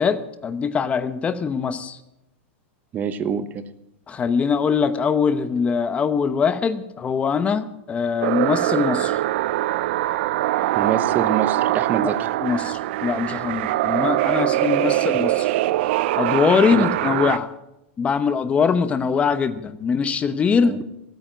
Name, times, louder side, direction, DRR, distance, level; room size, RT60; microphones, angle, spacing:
voice 1, 0.0-2.0 4.1-9.2 12.0-12.1 12.4-15.5 16.2-17.5 18.0-20.8, left 6 dB, 20° left, 12 dB, 0.9 m, -22 dB
voice 2, 2.9-3.6 10.7-12.2 16.7-16.9 20.6-20.8, right 8 dB, 25° right, 12 dB, 0.9 m, -25 dB
sound 1, 8.2-17.4, right 15 dB, 60° right, 0.5 m, -22 dB
15.5 x 9.2 x 7.6 m, 0.88 s
supercardioid pair, 145°, 7 cm